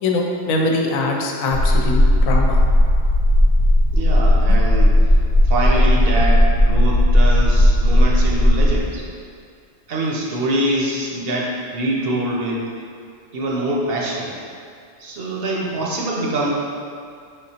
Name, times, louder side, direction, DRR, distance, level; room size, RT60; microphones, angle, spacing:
voice 1, 0.0-2.6, left 2 dB, 85° left, 0 dB, 1.0 m, -22 dB
sound 1, 1.5-8.8, left 1 dB, 45° left, 0.8 m, -15 dB
voice 2, 3.9-5.0 5.4-9.0 9.9-12.7 13.3-14.3 15.0-16.5, right 1 dB, 55° right, -3 dB, 0.7 m, -24 dB
5.0 x 3.7 x 2.8 m, 2.3 s
omnidirectional pair, 1.4 m